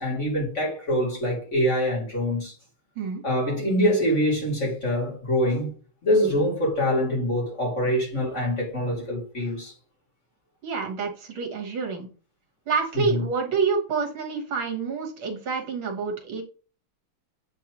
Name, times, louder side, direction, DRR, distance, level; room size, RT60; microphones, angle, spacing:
voice 1, 0.0-2.5 3.2-5.7 6.0-9.7 12.9-13.2, equal, 35° left, 2.7 m, -24 dB
voice 2, 10.6-12.1 12.7-16.4, right 5 dB, 70° right, 2.1 m, -28 dB
8.1 x 4.8 x 3.0 m
omnidirectional pair, 2.4 m